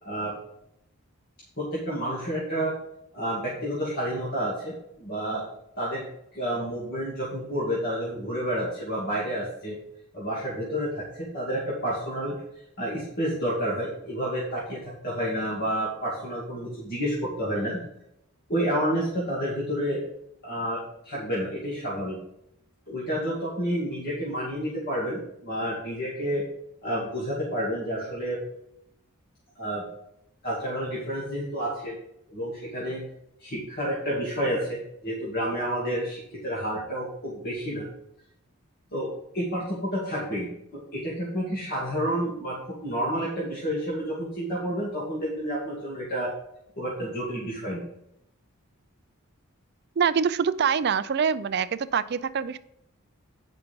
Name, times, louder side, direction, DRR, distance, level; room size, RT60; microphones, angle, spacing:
voice 1, 0.0-0.3 1.6-2.7 3.1-5.5 5.8-6.0 6.3-9.8 10.1-12.4 12.8-17.8 18.5-20.0 20.4-22.2 22.9-26.4 26.8-28.4 29.6-29.8 30.4-32.0 32.3-33.1 33.4-37.9 38.9-46.3 46.8-47.8, equal, 45° left, -7 dB, 2.4 m, -30 dB
voice 2, 50.0-52.6, right 6 dB, 45° right, 14 dB, 0.4 m, -25 dB
9.1 x 5.8 x 5.2 m, 0.77 s
head